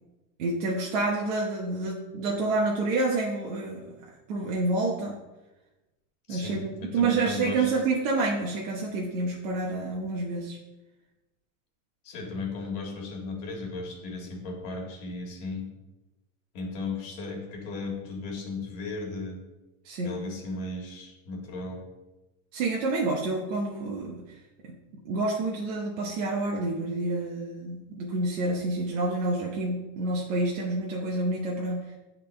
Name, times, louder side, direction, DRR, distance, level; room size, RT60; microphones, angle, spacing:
voice 1, 0.4-5.2 6.3-10.6 19.8-20.2 22.5-24.2 24.6-24.8 25.0-31.9, right 2 dB, 65° right, -2 dB, 1.1 m, -28 dB
voice 2, 6.3-7.7 12.0-15.7 16.5-19.4 20.0-21.8, left 3 dB, 40° left, -1 dB, 1.8 m, -36 dB
10.0 x 3.7 x 3.3 m, 1.1 s
supercardioid pair, 175°, 41 cm